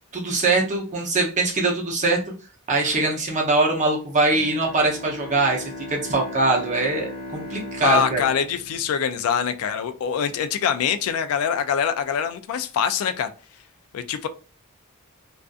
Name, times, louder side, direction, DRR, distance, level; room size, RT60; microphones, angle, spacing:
voice 1, 0.1-2.2 2.7-8.2, right 3 dB, 35° right, 0 dB, 0.6 m, -22 dB
Bowed string instrument, 4.3-9.8, left 1 dB, 45° left, 1.1 m, -38 dB
voice 2, 7.8-13.3 13.9-14.3, left 8 dB, 70° left, 11 dB, 0.3 m, -24 dB
2.5 x 2.4 x 2.3 m, 0.36 s
head